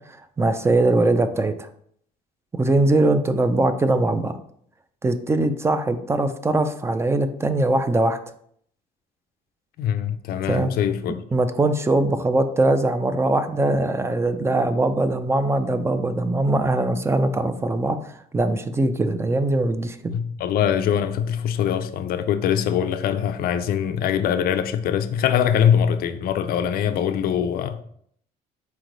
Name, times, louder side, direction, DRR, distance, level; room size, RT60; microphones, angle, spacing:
voice 1, 0.4-1.7 2.5-4.4 5.0-8.2 10.5-10.7 11.3-18.0 18.3-20.1, right 2 dB, 15° right, 0.4 m, -21 dB
voice 2, 9.8-11.2 20.1-27.8, left 9 dB, 60° left, 0.4 m, -23 dB
4.3 x 3.2 x 3.8 m
cardioid pair, 110°, 17 cm